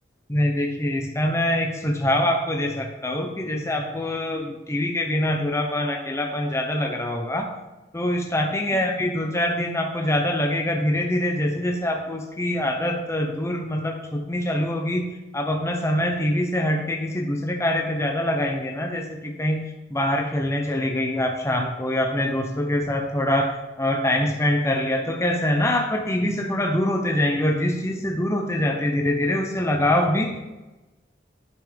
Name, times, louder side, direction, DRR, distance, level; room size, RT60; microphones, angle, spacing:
voice 1, 0.3-7.6 7.9-15.1 15.3-19.6 19.9-30.4, left 1 dB, 15° left, 2 dB, 0.7 m, -24 dB
10.5 x 5.8 x 3.4 m, 1.1 s
head